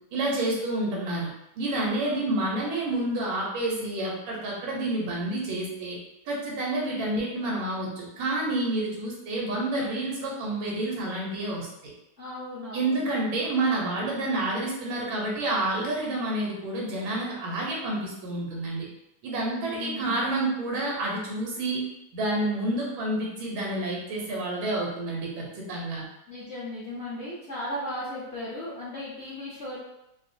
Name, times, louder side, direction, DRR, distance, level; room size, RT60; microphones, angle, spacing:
voice 1, 0.1-1.3 1.6-6.0 6.2-11.9 12.7-18.9 19.2-21.8 22.1-26.0, right 2 dB, 90° right, -3 dB, 1.7 m, -29 dB
voice 2, 12.2-13.0 19.5-20.2 26.3-29.8, left 1 dB, 55° left, -9 dB, 0.8 m, -36 dB
4.7 x 2.1 x 2.6 m, 0.87 s
omnidirectional pair, 2.1 m